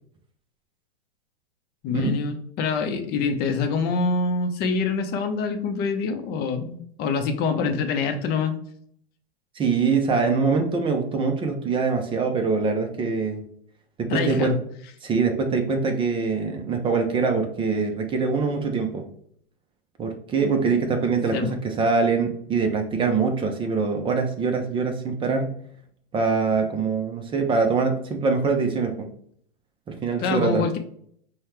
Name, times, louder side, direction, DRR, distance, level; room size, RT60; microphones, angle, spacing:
voice 1, 1.8-8.6 14.1-14.5 21.3-21.6 30.2-30.8, left 4 dB, 35° left, 6 dB, 0.7 m, -25 dB
voice 2, 9.6-13.4 14.0-14.6 15.0-19.0 20.0-25.5 26.1-29.1 29.9-30.7, right 4 dB, 15° right, 4 dB, 0.5 m, -23 dB
5.4 x 2.3 x 3.2 m, 0.64 s
hypercardioid pair, 120°, 30 cm